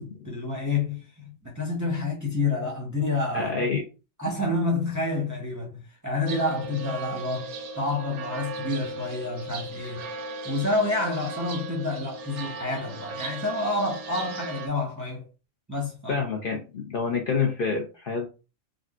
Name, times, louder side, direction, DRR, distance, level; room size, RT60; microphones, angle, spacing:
voice 1, 0.0-3.5 4.2-10.0 10.4-15.2 15.7-16.2, left 2 dB, 20° right, 0.6 m, -29 dB
voice 2, 3.3-3.8 16.1-18.3, left 5 dB, 55° left, 0.6 m, -27 dB
sound 1, 6.3-14.7, right 3 dB, 85° right, 1.0 m, -37 dB
3.7 x 2.2 x 2.4 m
omnidirectional pair, 1.3 m